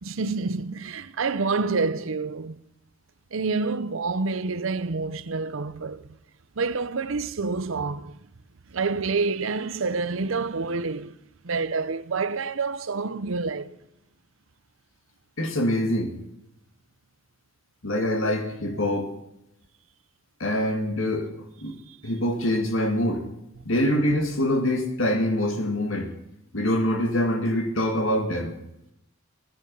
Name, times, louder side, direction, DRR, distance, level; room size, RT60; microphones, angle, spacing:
voice 1, 0.0-2.6 3.3-6.2 6.6-8.2 8.7-11.2 11.4-13.8 21.9-22.0, right 4 dB, 70° right, 0.7 m, -28 dB
voice 2, 15.4-16.1 17.8-19.1 20.4-21.3 21.6-21.8 22.0-23.3 23.7-26.1 26.5-28.6, left 1 dB, 70° left, 2.3 m, -24 dB
18.0 x 10.5 x 5.5 m
head